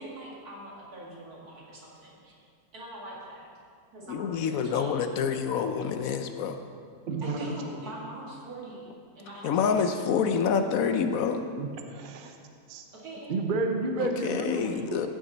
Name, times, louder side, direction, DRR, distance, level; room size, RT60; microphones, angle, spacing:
voice 1, 0.0-2.4 2.7-3.5 3.9-5.0 7.2-8.8 9.2-10.1 12.9-13.4, right 1 dB, 75° right, -4 dB, 2.6 m, -43 dB
voice 2, 4.1-6.6 7.5-7.6 9.4-11.5 14.0-15.1, left 6 dB, 70° left, 8 dB, 1.0 m, -27 dB
voice 3, 7.1-7.5 11.6-12.4 12.7-12.8 13.3-15.1, right 3 dB, 45° right, 4 dB, 0.7 m, -31 dB
14.5 x 6.4 x 4.0 m, 2.3 s
omnidirectional pair, 1.6 m